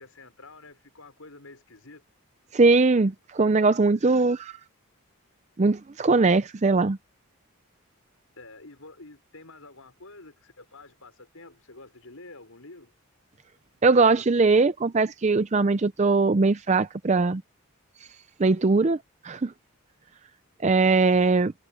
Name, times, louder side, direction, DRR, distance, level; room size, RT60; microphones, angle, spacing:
voice 1, 0.0-2.0 8.4-12.9, left 2 dB, 75° left, 5.7 m, -48 dB
voice 2, 2.5-4.6 5.6-7.0 13.8-17.4 18.4-19.0 19.2-19.5 20.6-21.5, right 3 dB, 30° right, 0.4 m, -21 dB
head